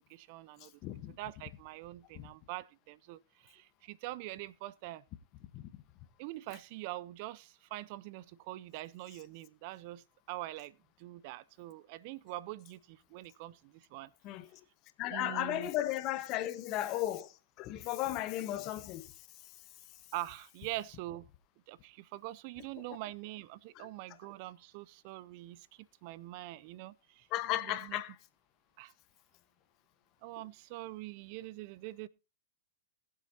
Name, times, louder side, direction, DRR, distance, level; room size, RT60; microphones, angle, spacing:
voice 1, 0.1-0.7 1.2-5.0 6.2-14.1 15.1-15.7 20.1-21.3 21.7-25.7 26.0-28.0 28.8-28.9 30.2-32.1, right 16 dB, 50° right, 0.5 m, -44 dB
voice 2, 0.8-1.2 2.1-2.3 5.5-5.7 14.2-14.6 15.0-17.3 17.6-19.1 23.7-23.9 27.3-28.2, left 14 dB, 40° left, 1.2 m, -35 dB
21.0 x 7.5 x 2.8 m
hypercardioid pair, 120°, 0 cm